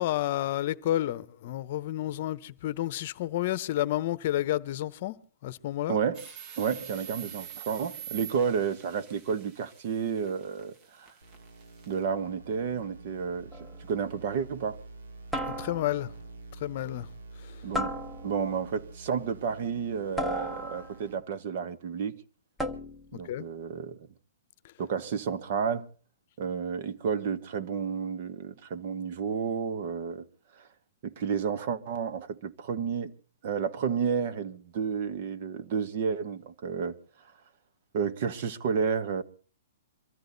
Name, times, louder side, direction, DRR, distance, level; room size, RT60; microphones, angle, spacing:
voice 1, 0.0-5.2 5.4-6.0 15.5-16.1 16.6-17.7 23.2-23.4 24.6-24.7, left 13 dB, 40° left, 1.0 m, -31 dB
voice 2, 5.9-6.2 6.6-11.1 11.9-13.5 13.9-14.8 17.6-17.9 18.2-22.2 23.1-24.0 24.8-25.9 26.4-30.2 30.6-30.7 31.0-33.1 33.4-36.9 37.9-39.2, right 6 dB, 40° right, 1.4 m, -31 dB
sound 1, 6.1-12.0, right 8 dB, 25° right, 1.5 m, -45 dB
sound 2, 11.2-21.2, right 3 dB, 90° right, 4.2 m, -48 dB
sound 3, 13.5-13.9 15.3-16.1 17.7-18.6 20.2-21.1 22.6-23.2, equal, ahead, 0.8 m, -35 dB
23.5 x 14.0 x 4.1 m
hypercardioid pair, 165°, 0 cm